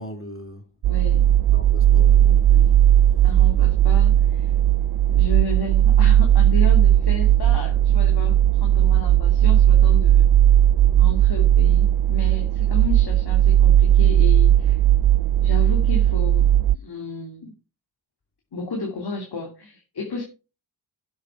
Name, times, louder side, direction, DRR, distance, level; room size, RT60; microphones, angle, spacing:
voice 1, 0.0-0.8 1.5-3.3, equal, 25° left, 2.9 m, -39 dB
sound 1, 0.8-16.8, right 11 dB, 55° right, 0.5 m, -17 dB
voice 2, 0.9-1.3 3.2-4.5 5.1-10.3 11.0-14.8 15.4-17.5 18.5-20.2, left 2 dB, 55° left, 2.8 m, -33 dB
11.5 x 7.3 x 4.5 m
supercardioid pair, 50°, 47 cm